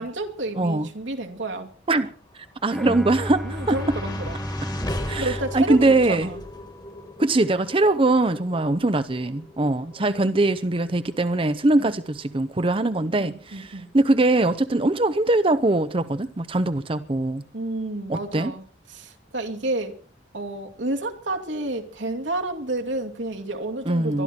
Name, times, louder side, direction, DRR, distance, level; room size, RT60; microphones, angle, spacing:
voice 1, 0.0-1.7 3.4-4.5 5.2-6.4 10.0-10.2 11.8-11.9 12.8-13.9 17.5-18.6 18.9-19.9 20.3-24.2, right 2 dB, 85° right, 2.5 m, -30 dB
voice 2, 0.6-0.9 1.9-4.0 5.1-6.3 7.2-17.4 18.1-18.5 23.9-24.2, right 2 dB, 30° right, 0.7 m, -22 dB
sound 1, 2.3-14.6, left 1 dB, 20° left, 1.7 m, -39 dB
Bowed string instrument, 2.7-6.9, equal, ahead, 0.8 m, -34 dB
23.0 x 12.5 x 4.4 m
head